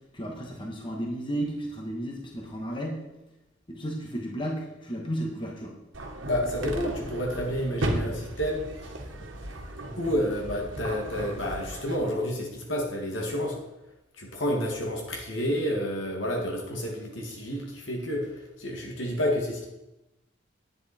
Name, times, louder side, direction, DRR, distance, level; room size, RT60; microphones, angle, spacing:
voice 1, 0.1-3.0 3.7-5.8, right 1 dB, 25° left, 0 dB, 1.5 m, -33 dB
sound 1, 5.9-12.0, right 1 dB, 80° right, 1.6 m, -35 dB
voice 2, 6.3-8.9 9.5-9.7 10.0-13.6 14.2-19.7, equal, 75° left, 0 dB, 2.1 m, -30 dB
10.5 x 9.4 x 4.4 m, 0.95 s
head